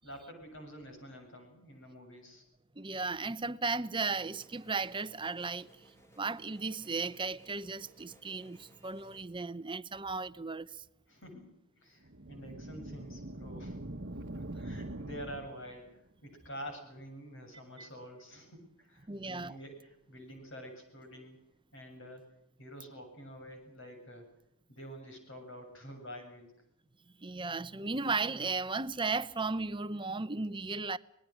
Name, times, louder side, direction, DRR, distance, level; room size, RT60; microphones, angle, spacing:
voice 1, 0.0-2.4 11.1-13.8 14.3-21.4 21.7-22.3 22.6-24.3 24.7-26.6, equal, 55° left, 7.4 m, -48 dB
voice 2, 2.8-5.7 6.2-10.8 17.8-17.9 19.1-19.6 27.2-31.0, right 4 dB, 20° right, 0.8 m, -35 dB
sound 1, 4.1-9.2, right 1 dB, 10° left, 2.7 m, -61 dB
sound 2, 12.1-15.9, right 1 dB, 50° right, 1.2 m, -43 dB
26.0 x 20.5 x 6.4 m
head